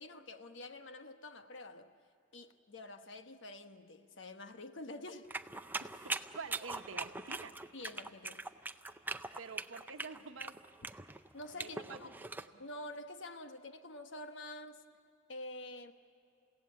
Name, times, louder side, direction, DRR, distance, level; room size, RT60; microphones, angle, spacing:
voice 1, 0.0-1.9 2.3-5.3 7.7-8.4 11.3-12.1 12.6-14.8 15.3-15.9, left 2 dB, 65° left, 1.2 m, -47 dB
sound 1, 5.3-12.5, right 3 dB, 10° right, 0.5 m, -42 dB
voice 2, 5.8-7.5 9.4-10.6 11.5-12.2 12.5-12.6, right 4 dB, 85° right, 1.1 m, -48 dB
30.0 x 16.5 x 8.6 m
head